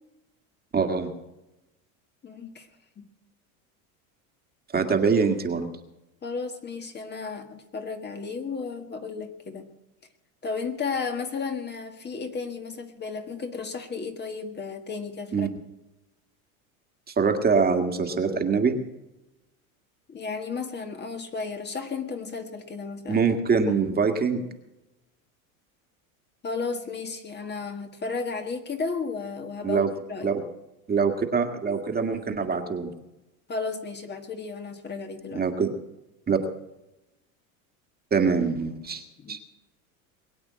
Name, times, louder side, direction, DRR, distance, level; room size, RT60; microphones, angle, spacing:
voice 1, 0.7-1.1 4.7-5.7 15.3-15.5 17.2-18.7 23.1-24.4 29.6-29.9 30.2-30.4 30.9-32.9 35.4-35.7 36.3-36.4 38.1-39.0 39.3-39.4, right 5 dB, 20° right, 5 dB, 1.9 m, -24 dB
voice 2, 2.2-2.7 3.0-3.1 6.2-9.7 10.4-15.5 20.1-23.2 23.5-23.6 26.4-29.8 30.1-30.4 33.5-35.4 39.2-39.4, left 4 dB, 25° left, 5 dB, 1.6 m, -33 dB
22.0 x 8.6 x 7.5 m, 0.96 s
supercardioid pair, 115°, 42 cm